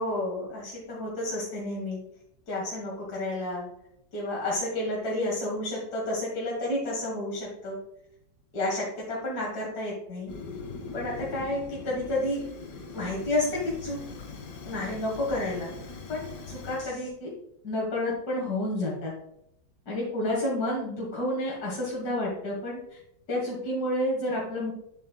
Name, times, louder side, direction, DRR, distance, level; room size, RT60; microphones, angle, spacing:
voice 1, 0.0-2.0 2.5-3.7 4.1-7.8 8.5-10.3 10.9-12.4 12.9-14.0 14.6-15.8 16.1-17.3 17.6-19.1 19.9-23.0 23.3-24.7, left 1 dB, 65° left, -4 dB, 2.1 m, -30 dB
Fire, 10.3-16.9, left 4 dB, 80° left, 1.7 m, -41 dB
8.8 x 7.2 x 2.2 m, 0.80 s
omnidirectional pair, 1.8 m